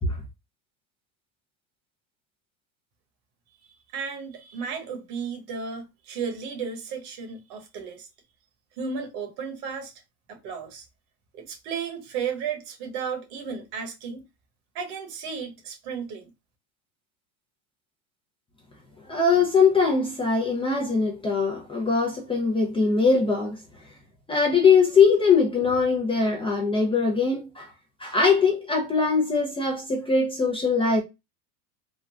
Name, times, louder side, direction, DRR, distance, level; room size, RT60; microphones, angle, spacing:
voice 1, 3.9-8.1 8.8-10.0 10.3-10.9 11.3-14.2 14.7-16.3, right 6 dB, 65° right, 1.3 m, -34 dB
voice 2, 19.1-23.6 24.3-27.7 28.0-31.0, left 4 dB, 10° left, 0.5 m, -21 dB
3.7 x 2.2 x 2.3 m
supercardioid pair, 120°, 46 cm